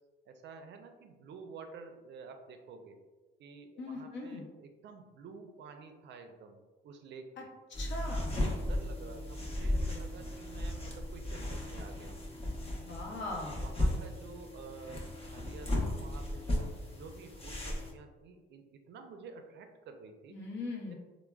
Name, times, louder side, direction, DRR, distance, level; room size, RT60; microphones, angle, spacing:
voice 1, 0.3-3.0 3.4-6.6 6.8-7.5 8.2-12.3 12.9-13.3 13.6-20.3 20.8-20.9, right 4 dB, 65° right, 6 dB, 0.4 m, -50 dB
voice 2, 3.8-4.4 7.7-8.4 12.7-13.6 20.3-20.9, left 2 dB, 65° left, -1 dB, 0.7 m, -40 dB
sound 1, 7.7-17.9, left 1 dB, 30° left, 0.7 m, -35 dB
3.2 x 2.0 x 2.2 m, 1.3 s
cardioid pair, 90°, 20 cm